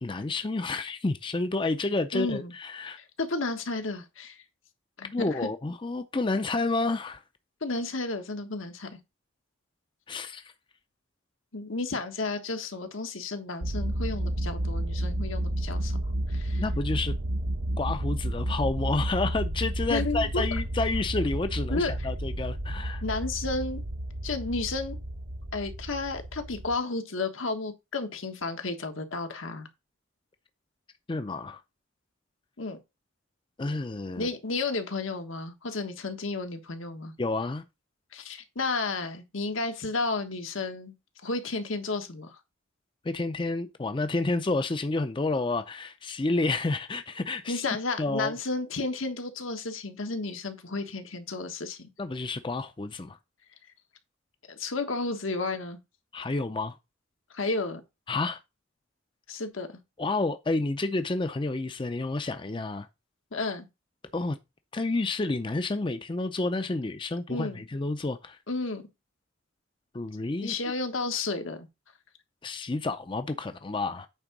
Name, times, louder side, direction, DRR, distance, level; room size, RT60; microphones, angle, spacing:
voice 1, 0.0-3.0 5.1-7.2 10.1-10.5 16.6-17.1 17.8-23.0 31.1-31.6 33.6-34.3 37.2-37.6 43.0-47.6 48.0-48.3 52.0-53.2 56.1-56.8 58.1-58.4 60.0-62.9 64.1-64.4 64.7-68.4 69.9-70.5 72.4-74.1, left 3 dB, 25° left, 0.5 m, -30 dB
voice 2, 2.1-2.5 3.2-4.4 5.0-5.3 7.6-9.0 11.5-15.9 16.3-16.6 19.9-20.4 21.7-22.1 23.0-23.8 24.2-25.0 25.5-29.7 32.6-32.8 34.2-37.1 38.1-40.9 41.2-42.4 47.5-51.9 54.6-55.8 57.3-57.8 59.3-59.7 63.3-63.7 67.3-67.6 68.5-68.8 70.4-71.7, left 3 dB, 80° left, 1.4 m, -32 dB
sound 1, 13.6-26.8, right 1 dB, 80° right, 1.1 m, -31 dB
8.9 x 3.7 x 6.0 m
head